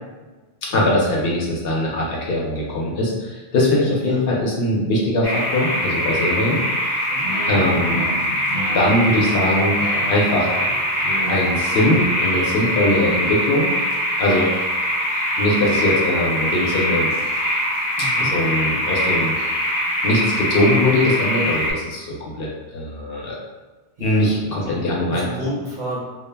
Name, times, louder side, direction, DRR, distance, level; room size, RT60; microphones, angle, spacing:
voice 1, 0.7-6.6 7.5-8.0 8.7-9.8 10.1-10.5 11.3-13.7 14.2-14.6 15.4-17.1 18.2-19.3 20.0-23.4 24.0-25.3, left 1 dB, 65° left, -3 dB, 0.7 m, -21 dB
sound 1, 5.2-21.7, equal, 30° left, 0.5 m, -22 dB
sound 2, 7.2-12.3, right 1 dB, 70° right, 0.9 m, -32 dB
voice 2, 18.0-18.4 24.0-24.3 24.6-26.0, equal, 50° right, -5 dB, 0.7 m, -31 dB
2.2 x 2.1 x 3.2 m, 1.2 s
omnidirectional pair, 1.2 m